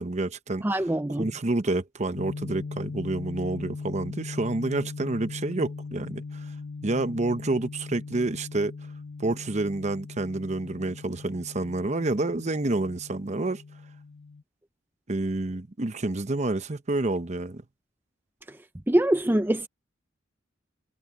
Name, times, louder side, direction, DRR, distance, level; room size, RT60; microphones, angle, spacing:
voice 1, 0.0-0.7 1.2-6.5 6.8-8.7 9.2-13.6 15.1-17.6, right 2 dB, 35° right, 0.8 m, -28 dB
voice 2, 0.6-1.3 18.9-19.7, right 1 dB, 10° right, 0.6 m, -23 dB
sound 1, 2.1-14.4, left 4 dB, 70° left, 0.7 m, -39 dB
head